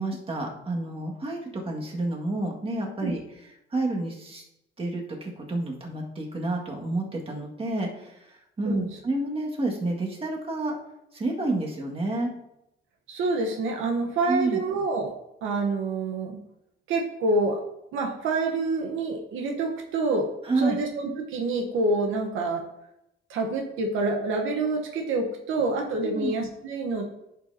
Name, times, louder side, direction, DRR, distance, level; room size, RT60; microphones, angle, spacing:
voice 1, 0.0-3.2 3.7-4.4 4.8-10.8 11.1-12.3 14.3-14.6 20.4-20.8 26.0-26.3, right 2 dB, 30° right, 0 dB, 1.8 m, -29 dB
voice 2, 13.1-15.1 15.4-16.4 16.9-17.6 17.9-20.3 20.6-22.6 23.3-27.0, right 2 dB, 85° right, 2 dB, 1.0 m, -27 dB
11.0 x 5.6 x 2.7 m, 0.85 s
cardioid pair, 90°, 20 cm